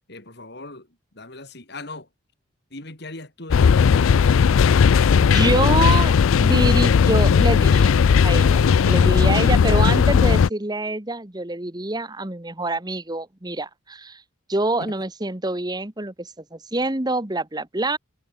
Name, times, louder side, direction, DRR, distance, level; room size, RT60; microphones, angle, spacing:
voice 1, 0.1-2.1 2.7-4.0 14.8-14.9, left 2 dB, 55° left, 4.3 m, -39 dB
sound 1, 3.5-10.5, left 6 dB, 90° left, 0.4 m, -16 dB
voice 2, 5.2-6.1 6.4-7.9 8.2-14.2 14.5-18.0, right 2 dB, 20° right, 1.4 m, -26 dB
head